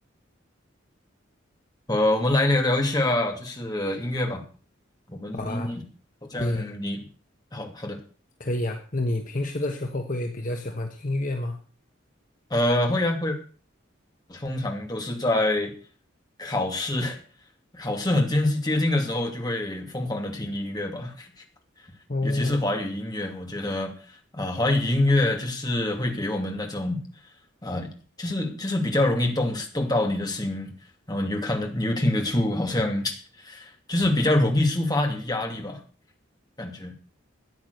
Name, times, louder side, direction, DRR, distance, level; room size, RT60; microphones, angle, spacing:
voice 1, 1.9-4.4 5.1-5.8 6.3-7.1 7.5-8.0 12.5-13.4 14.3-15.7 16.4-17.2 17.7-21.3 22.2-23.9 24.3-27.0 27.6-27.9 28.2-30.7 31.1-35.8 36.6-36.9, left 1 dB, 20° left, 2 dB, 2.5 m, -25 dB
voice 2, 5.3-5.7 6.4-6.7 8.4-11.6 22.1-22.6, left 1 dB, 45° left, 4 dB, 1.2 m, -28 dB
13.5 x 9.5 x 6.7 m, 0.40 s
head